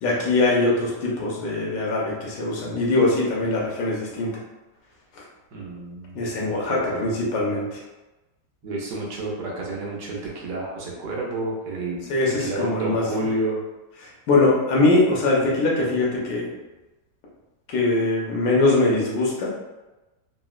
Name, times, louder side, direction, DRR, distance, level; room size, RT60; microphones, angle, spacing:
voice 1, 0.0-4.3 5.2-5.3 6.1-7.8 12.1-13.0 14.0-16.5 17.7-19.5, left 2 dB, 85° left, -3 dB, 1.5 m, -22 dB
voice 2, 5.5-7.1 8.6-12.1 12.4-13.6, right 2 dB, 80° right, -3 dB, 1.4 m, -30 dB
3.9 x 2.0 x 2.3 m, 1.1 s
omnidirectional pair, 1.8 m